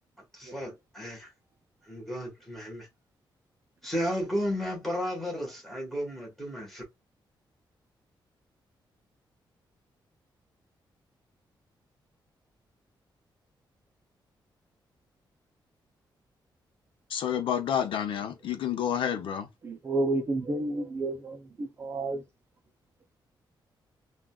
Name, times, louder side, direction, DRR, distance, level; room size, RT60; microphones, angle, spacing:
voice 1, 0.3-1.3 1.9-2.9 3.8-6.8, equal, 5° left, 1.4 m, -33 dB
voice 2, 17.1-19.5, left 9 dB, 90° left, 0.7 m, -29 dB
voice 3, 19.6-22.2, right 2 dB, 30° right, 0.5 m, -31 dB
3.7 x 2.3 x 2.3 m
wide cardioid pair, 150°, 8 cm